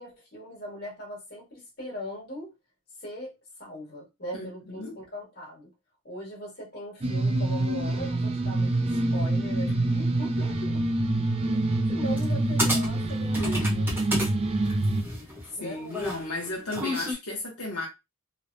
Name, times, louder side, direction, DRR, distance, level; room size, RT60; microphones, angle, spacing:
voice 1, 0.0-2.5 3.0-5.7 6.0-10.8 11.5-11.6 11.9-13.9 15.6-16.0, equal, 45° left, 1.5 m, -40 dB
sound 1, 7.0-15.0, right 2 dB, 30° right, 0.4 m, -26 dB
sound 2, 12.2-12.3 12.6-14.3 14.7-17.1, equal, 10° right, 0.8 m, -30 dB
voice 2, 13.4-14.0 15.6-17.9, left 2 dB, 85° left, 0.9 m, -35 dB
3.1 x 2.0 x 2.5 m
head